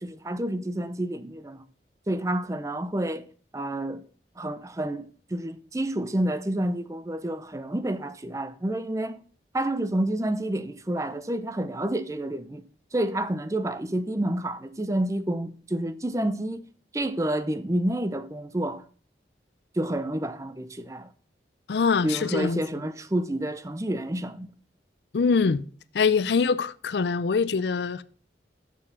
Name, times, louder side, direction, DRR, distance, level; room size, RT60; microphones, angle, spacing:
voice 1, 0.0-1.6 2.1-3.3 3.5-4.0 4.4-9.2 9.5-12.6 12.9-16.6 16.9-18.8 19.7-21.1 22.0-24.5, right 1 dB, 15° right, 0.5 m, -29 dB
voice 2, 21.7-22.6 25.1-25.6 25.9-28.0, left 5 dB, 70° left, 0.4 m, -23 dB
7.2 x 6.7 x 5.6 m
head